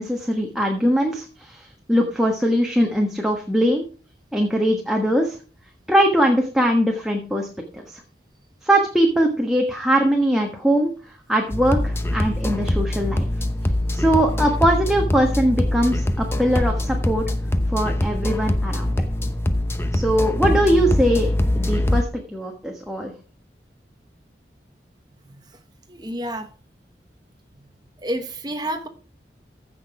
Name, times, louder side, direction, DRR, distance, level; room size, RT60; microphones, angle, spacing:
voice 1, 0.0-3.8 4.3-5.4 5.9-7.5 7.7-8.0 8.6-13.3 13.9-17.2 17.7-18.9 19.9-21.3 21.5-23.1, equal, 5° right, 1 dB, 1.3 m, -21 dB
sound 1, 11.5-22.0, left 1 dB, 15° left, 0.8 m, -23 dB
voice 2, 25.9-26.5 28.0-28.9, right 1 dB, 20° right, 8 dB, 0.9 m, -29 dB
15.0 x 6.1 x 4.8 m, 0.37 s
head